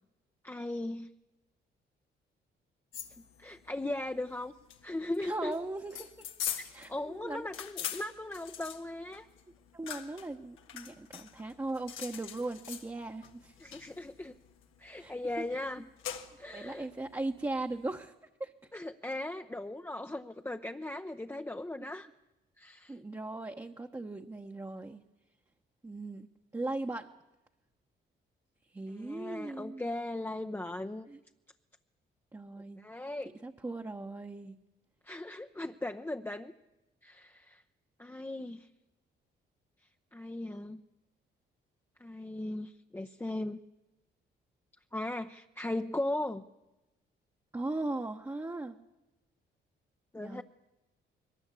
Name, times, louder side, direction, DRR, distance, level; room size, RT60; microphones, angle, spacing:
voice 1, 0.4-1.1 3.2-4.5 4.8-5.6 6.6-9.3 13.6-14.4 14.8-15.9 16.4-16.9 18.7-22.1 22.6-23.0 28.9-31.1 32.8-33.3 35.0-36.5 37.0-37.6 38.0-38.7 40.1-40.8 42.0-43.6 44.9-46.4 50.1-50.4, left 1 dB, 10° left, 6 dB, 0.7 m, -38 dB
sound 1, 2.9-18.0, left 9 dB, 90° left, 1.6 m, -44 dB
voice 2, 5.2-6.3 6.7-7.5 9.7-13.5 14.9-15.1 15.8-15.9 16.4-18.1 18.4-18.5 22.9-25.0 25.8-26.3 26.5-27.1 28.7-29.9 31.1-31.2 32.3-32.8 33.4-34.6 47.5-48.8 50.2-50.4, right 2 dB, 15° right, 2 dB, 1.0 m, -38 dB
21.5 x 19.5 x 8.3 m, 1.0 s
cardioid pair, 90°, 20 cm